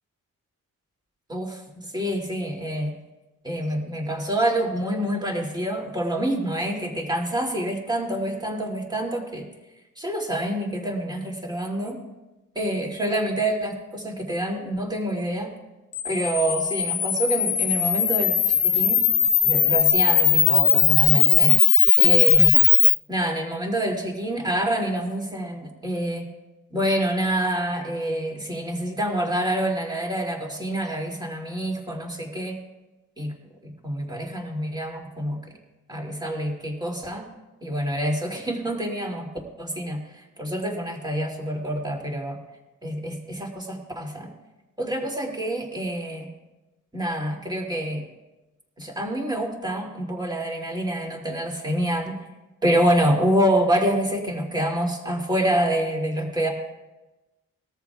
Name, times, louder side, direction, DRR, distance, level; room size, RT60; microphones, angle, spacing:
voice 1, 1.3-1.6 1.9-2.9 3.4-9.5 10.0-12.0 12.5-15.5 16.0-19.0 19.4-21.6 22.0-22.6 23.1-26.3 26.7-32.6 33.2-33.3 33.6-35.4 35.9-37.3 37.6-39.3 39.6-42.4 42.8-44.3 44.8-46.3 46.9-48.0 48.8-52.2 52.6-56.5, right 1 dB, 10° right, 0 dB, 2.7 m, -26 dB
Camera, 15.9-22.9, left 9 dB, 70° left, 0.9 m, -19 dB
20.5 x 13.5 x 2.4 m, 1.1 s
wide cardioid pair, 100°, 33 cm